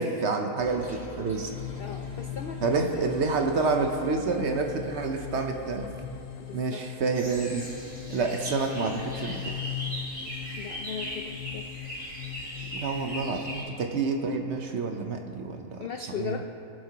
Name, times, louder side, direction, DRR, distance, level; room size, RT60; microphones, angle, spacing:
voice 1, 0.0-1.5 2.6-5.9 6.5-9.5 12.7-15.8 16.2-16.4, right 4 dB, 55° right, 4 dB, 1.0 m, -28 dB
Toilet flush, 0.6-6.2, left 1 dB, 25° right, 2.2 m, -45 dB
voice 2, 1.1-2.7 2.9-3.1 6.4-6.9 10.6-11.7 15.8-16.4, left 7 dB, 75° left, 5 dB, 0.5 m, -38 dB
sound 1, 1.5-13.2, left 11 dB, 90° left, 1.3 m, -40 dB
sound 2, 7.1-13.6, equal, 5° right, 2.9 m, -39 dB
21.5 x 7.4 x 2.9 m, 2.7 s
omnidirectional pair, 1.6 m